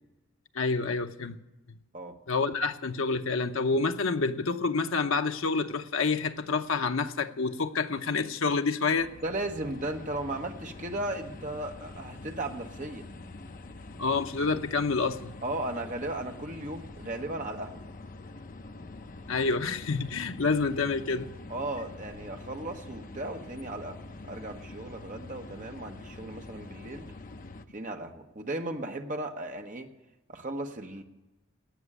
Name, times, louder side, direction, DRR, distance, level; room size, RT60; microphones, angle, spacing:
voice 1, 0.5-1.4 2.3-9.1 14.0-15.3 19.3-21.3, left 4 dB, 65° left, 0.8 m, -28 dB
sound 1, 8.9-27.7, left 2 dB, 40° left, 0.6 m, -45 dB
voice 2, 9.2-13.1 15.4-17.8 21.5-27.1 27.7-29.9 30.3-31.0, right 2 dB, 35° right, 1.1 m, -36 dB
17.5 x 6.2 x 9.8 m
head